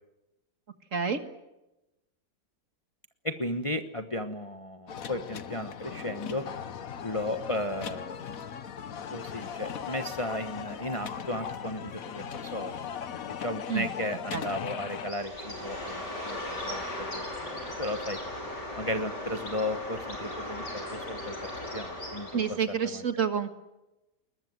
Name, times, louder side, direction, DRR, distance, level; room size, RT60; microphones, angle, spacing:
voice 1, 0.9-1.2 13.7-13.9 14.3-14.4 22.3-23.5, right 7 dB, 50° right, 9 dB, 1.9 m, -28 dB
voice 2, 3.2-6.4 7.0-8.2 9.1-12.8 13.3-17.2 17.8-18.2 18.8-21.3 21.7-22.6 22.8-23.0, left 1 dB, 20° left, 8 dB, 1.0 m, -35 dB
sound 1, 4.9-15.1, left 7 dB, 60° left, 1.4 m, -38 dB
Bird, 15.0-22.7, left 1 dB, 85° left, 6.3 m, -37 dB
21.0 x 21.0 x 9.4 m, 0.96 s
omnidirectional pair, 1.8 m